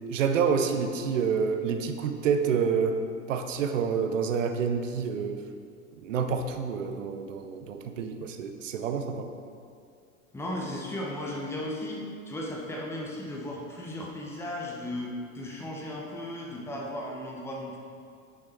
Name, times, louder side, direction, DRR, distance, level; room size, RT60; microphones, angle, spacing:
voice 1, 0.1-3.0 3.3-5.4 6.0-9.3, right 6 dB, 60° right, 7 dB, 0.8 m, -28 dB
voice 2, 10.3-17.8, left 1 dB, 5° left, -2 dB, 1.0 m, -36 dB
9.3 x 5.9 x 4.3 m, 2.3 s
figure-of-eight pair, 85°, 43 cm